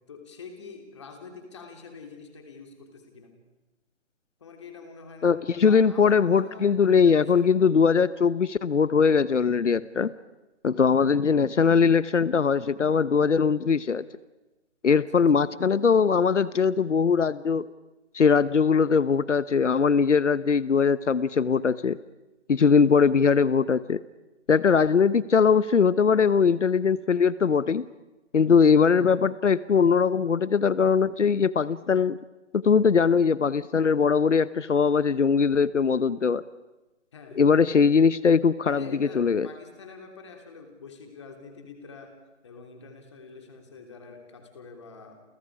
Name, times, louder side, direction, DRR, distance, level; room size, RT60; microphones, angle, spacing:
voice 1, 0.1-3.3 4.4-7.5 14.9-15.0 37.1-37.5 38.6-42.2 42.4-45.2, left 5 dB, 25° left, 4 dB, 3.3 m, -45 dB
voice 2, 5.2-10.1 10.6-14.0 14.8-17.7 18.1-22.0 22.5-24.0 24.5-27.9 28.3-32.2 32.5-36.4 37.4-39.5, left 6 dB, 85° left, 17 dB, 1.0 m, -21 dB
29.5 x 29.5 x 5.0 m, 1.1 s
hypercardioid pair, 175°, 36 cm